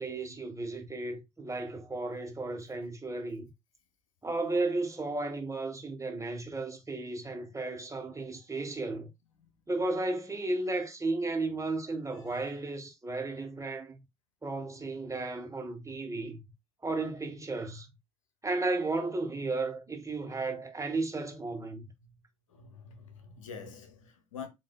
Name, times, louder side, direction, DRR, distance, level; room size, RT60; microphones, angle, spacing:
voice 1, 0.0-3.4 4.2-9.1 9.7-14.0 14.4-16.4 16.8-17.9 18.4-21.8, right 2 dB, 20° right, 1.4 m, -34 dB
voice 2, 12.1-12.4 22.5-24.5, left 6 dB, 85° left, 0.8 m, -47 dB
7.6 x 2.7 x 2.2 m
hypercardioid pair, 50°, 16 cm